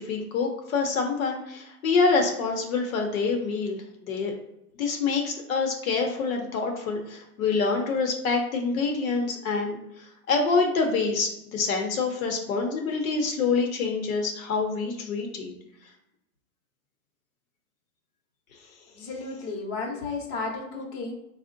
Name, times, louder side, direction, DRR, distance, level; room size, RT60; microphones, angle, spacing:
voice 1, 0.0-3.8 4.1-4.3 4.8-9.8 10.3-15.5, left 4 dB, 65° left, 2 dB, 0.7 m, -26 dB
voice 2, 18.9-21.1, left 3 dB, 30° left, -1 dB, 0.8 m, -33 dB
3.5 x 2.1 x 2.5 m, 0.85 s
hypercardioid pair, 140°, 46 cm